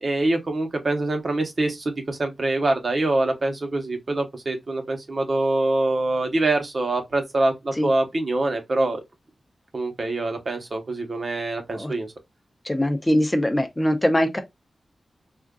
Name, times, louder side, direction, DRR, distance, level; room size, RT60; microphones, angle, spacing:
voice 1, 0.0-9.0 9.7-12.1, right 2 dB, 50° right, 0.9 m, -24 dB
voice 2, 12.6-14.4, equal, 15° left, 0.6 m, -22 dB
3.6 x 2.5 x 2.3 m
wide cardioid pair, 75°, 0 cm